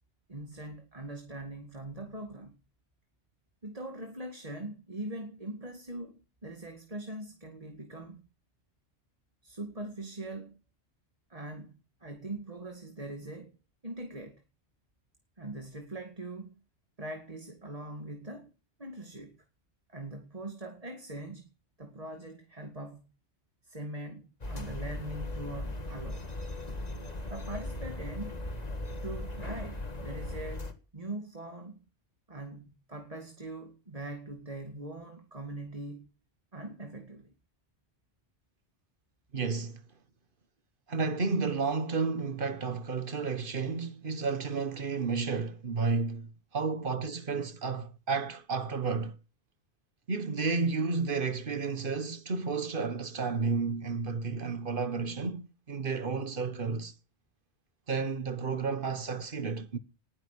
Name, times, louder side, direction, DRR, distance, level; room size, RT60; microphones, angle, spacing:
voice 1, 0.3-2.6 3.6-8.2 9.4-10.6 11.3-13.5 13.8-14.4 15.4-16.6 17.0-18.5 18.8-19.4 19.9-21.5 21.8-23.0 23.6-26.3 27.3-28.5 29.0-31.8 32.3-36.1 36.5-37.3, right 2 dB, 30° right, 2.3 m, -42 dB
sound 1, 24.4-30.7, left 2 dB, 35° left, 2.0 m, -38 dB
voice 2, 39.3-39.8 40.9-49.2 50.1-56.9 57.9-59.8, right 4 dB, 50° right, 1.6 m, -32 dB
19.0 x 10.5 x 6.6 m
omnidirectional pair, 1.2 m